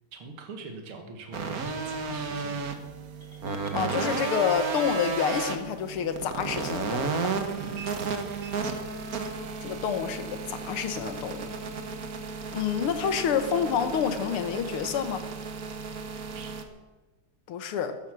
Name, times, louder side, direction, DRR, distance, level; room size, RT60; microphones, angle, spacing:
voice 1, 0.1-2.7 4.1-4.4 7.6-7.9 8.3-8.5 16.3-16.5, right 3 dB, 70° right, 4 dB, 2.4 m, -43 dB
sound 1, 1.3-16.6, right 4 dB, 45° right, 1.6 m, -33 dB
sound 2, 3.2-5.2, left 1 dB, 15° right, 1.9 m, -52 dB
voice 2, 3.7-7.4 9.6-11.6 12.5-15.2 17.5-18.0, left 7 dB, 80° left, 9 dB, 2.0 m, -28 dB
14.0 x 14.0 x 6.2 m, 1.2 s
omnidirectional pair, 2.4 m